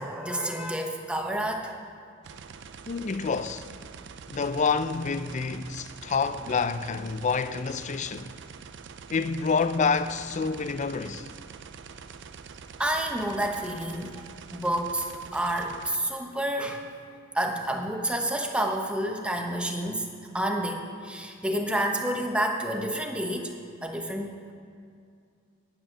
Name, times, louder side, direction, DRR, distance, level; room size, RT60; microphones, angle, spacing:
voice 1, 0.0-1.9 12.8-14.2 14.5-15.1 15.3-16.8 17.3-20.1 20.3-23.5 23.8-24.5, right 1 dB, 5° right, 1.0 m, -29 dB
sound 1, 2.2-16.0, right 5 dB, 60° right, 0.5 m, -45 dB
voice 2, 2.9-3.6 4.3-8.3 9.1-11.3 19.8-19.9, left 5 dB, 35° left, 0.4 m, -28 dB
10.0 x 9.0 x 7.5 m
head